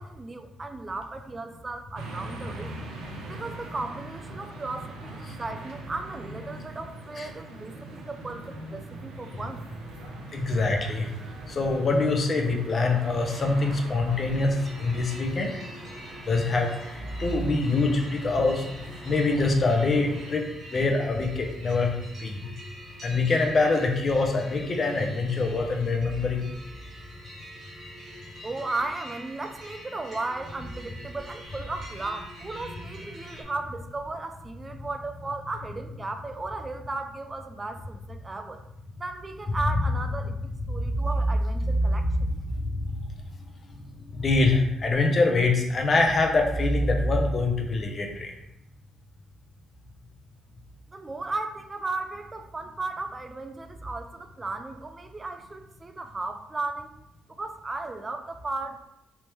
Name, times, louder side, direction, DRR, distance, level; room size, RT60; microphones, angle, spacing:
voice 1, 0.0-2.8 3.3-9.6 28.4-38.6 39.0-42.3 50.9-56.9 57.4-58.8, right 3 dB, 25° right, 7 dB, 0.4 m, -35 dB
sound 1, 2.0-20.3, right 2 dB, 90° right, 0.7 m, -42 dB
voice 2, 10.3-11.1 11.5-15.5 16.3-18.7 19.0-22.4 23.0-26.5 40.7-40.8 42.6-43.0 44.1-48.3, left 3 dB, 40° left, 3 dB, 0.7 m, -24 dB
sound 2, 14.1-33.4, equal, 50° right, 1.4 m, -46 dB
3.4 x 2.9 x 3.0 m, 0.85 s
cardioid pair, 90°, 0 cm